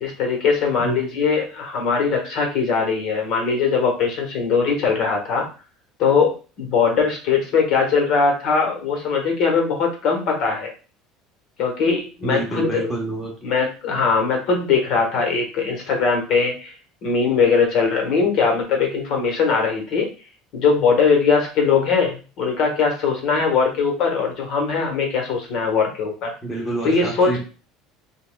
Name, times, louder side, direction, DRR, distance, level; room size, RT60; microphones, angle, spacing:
voice 1, 0.0-5.5 6.0-10.7 11.6-12.8 13.4-16.7 17.0-20.1 20.5-26.3 26.8-27.3, left 5 dB, 55° left, 1 dB, 1.3 m, -20 dB
voice 2, 12.2-13.3 26.4-27.4, right 2 dB, 5° left, -4 dB, 1.0 m, -27 dB
5.6 x 2.4 x 2.3 m, 0.35 s
cardioid pair, 150°, 0 cm